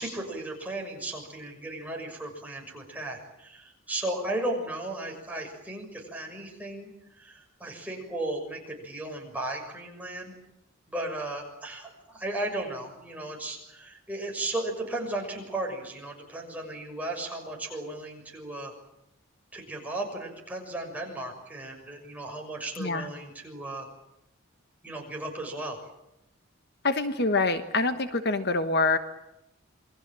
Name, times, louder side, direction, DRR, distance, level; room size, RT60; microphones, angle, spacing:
voice 1, 0.0-10.3 10.9-18.7 19.5-23.9 24.8-25.8, right 2 dB, 5° right, 0 dB, 6.4 m, -35 dB
voice 2, 26.8-29.0, left 3 dB, 50° left, 9 dB, 1.3 m, -25 dB
28.0 x 22.5 x 7.6 m, 0.86 s
head